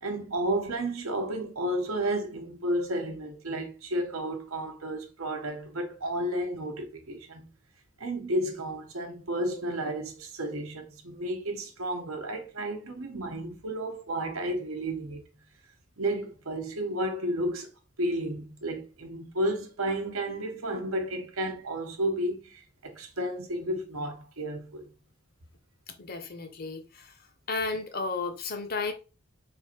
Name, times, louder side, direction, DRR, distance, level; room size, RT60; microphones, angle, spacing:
voice 1, 0.0-7.5 8.0-15.3 16.0-17.7 18.0-24.9, right 1 dB, 90° right, 0.9 m, -32 dB
voice 2, 26.0-27.1 27.5-28.9, left 3 dB, 45° left, 0.7 m, -33 dB
3.4 x 2.5 x 4.4 m
head